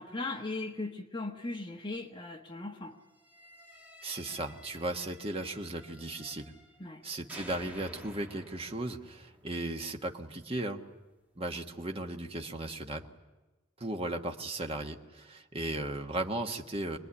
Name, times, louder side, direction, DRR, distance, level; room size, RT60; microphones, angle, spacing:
voice 1, 0.0-3.0 6.8-7.0, left 2 dB, 25° left, 3 dB, 1.3 m, -38 dB
sound 1, 3.1-7.0 7.3-10.3, equal, 10° right, 2.0 m, -52 dB
voice 2, 4.0-6.5 7.0-10.8 11.4-13.1 13.8-17.0, right 2 dB, 30° right, 4 dB, 1.4 m, -36 dB
25.0 x 20.5 x 9.8 m, 1.2 s
head